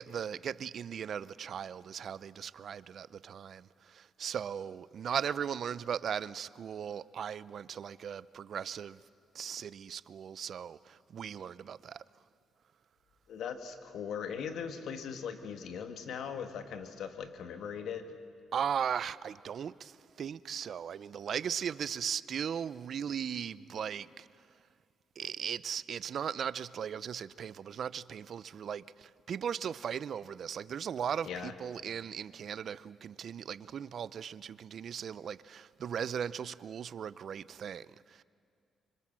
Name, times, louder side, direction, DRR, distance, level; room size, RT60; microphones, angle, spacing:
voice 1, 0.0-9.0 9.3-12.0 18.5-24.3 25.2-38.2, right 8 dB, 60° right, 0.6 m, -38 dB
voice 2, 13.3-18.1 31.2-31.5, left 7 dB, 75° left, 2.0 m, -39 dB
26.0 x 25.0 x 7.5 m
cardioid pair, 90°, 0 cm